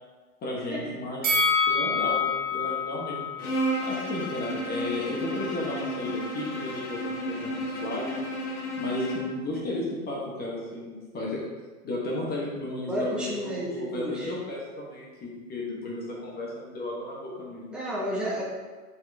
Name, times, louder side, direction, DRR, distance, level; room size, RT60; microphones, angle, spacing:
voice 1, 0.4-1.4 1.7-3.6 3.9-8.2 8.8-11.5 11.8-17.7, left 2 dB, 20° left, -3 dB, 1.3 m, -34 dB
Bell, 1.2-4.4 4.8-4.9, left 4 dB, 20° right, 1.6 m, -27 dB
Bowed string instrument, 3.4-9.4, equal, 75° left, 1.3 m, -32 dB
voice 2, 12.9-14.3 17.7-18.4, equal, ahead, -7 dB, 1.1 m, -31 dB
7.6 x 4.2 x 3.6 m, 1.4 s
figure-of-eight pair, 105°, 45 cm